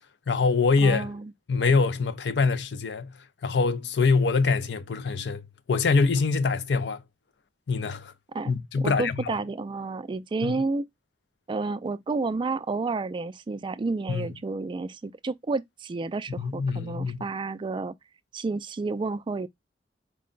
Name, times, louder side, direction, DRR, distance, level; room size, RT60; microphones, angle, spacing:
voice 1, 0.3-1.1 1.5-7.0 7.7-8.1 8.5-9.3 10.4-10.6 14.1-14.3 16.4-17.3, left 4 dB, 70° left, 0.5 m, -24 dB
voice 2, 0.8-1.3 8.3-10.9 11.5-17.9 18.3-19.5, right 3 dB, 30° right, 0.3 m, -30 dB
4.6 x 2.1 x 3.7 m
head